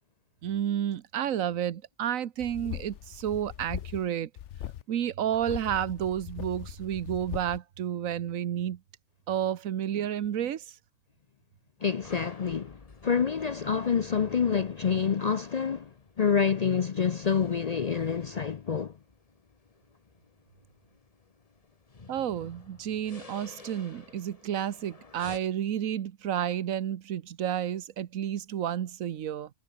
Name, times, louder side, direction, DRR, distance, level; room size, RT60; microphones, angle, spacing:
voice 1, 0.4-4.3 4.9-8.8 9.3-10.8 22.1-29.5, right 10 dB, 90° right, 1.3 m, -31 dB
sound 1, 2.4-4.1 4.4-4.8 5.3-7.6, left 11 dB, 70° left, 1.0 m, -40 dB
voice 2, 11.8-15.9 16.2-18.9, left 6 dB, 50° left, 0.5 m, -27 dB
sound 2, 11.8-25.4, left 4 dB, 30° left, 1.3 m, -53 dB
omnidirectional pair, 1.4 m